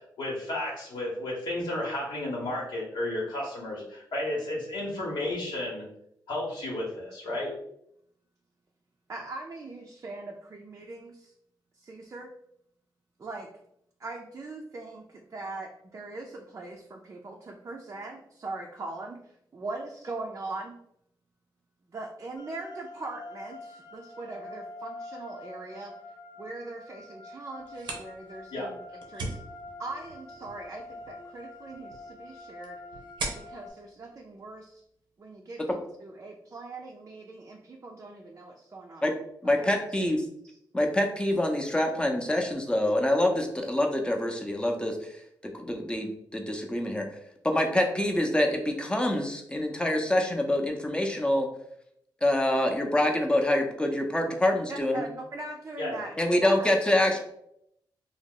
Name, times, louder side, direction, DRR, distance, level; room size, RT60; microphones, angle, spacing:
voice 1, 0.2-5.8 6.3-7.5 28.5-28.7 55.8-56.0, left 1 dB, 80° left, -4 dB, 0.9 m, -32 dB
voice 2, 9.1-11.3 11.7-12.3 13.2-13.5 14.0-20.8 21.9-26.0 26.4-29.4 29.8-32.8 33.3-34.8 35.2-39.1 39.6-39.7 40.4-40.6 41.9-42.2 54.7-56.1 56.4-56.8 57.1-57.2, right 2 dB, 40° right, 0 dB, 0.4 m, -41 dB
sound 1, 22.4-33.7, left 2 dB, 50° left, 0.8 m, -46 dB
sound 2, 27.6-35.1, right 2 dB, 85° right, 0.7 m, -42 dB
voice 3, 39.4-40.2 40.7-45.0 45.4-47.1 47.4-51.5 52.2-55.1 56.2-57.2, left 1 dB, 10° left, 2 dB, 0.6 m, -26 dB
2.8 x 2.0 x 3.7 m, 0.74 s
cardioid pair, 70°, 8 cm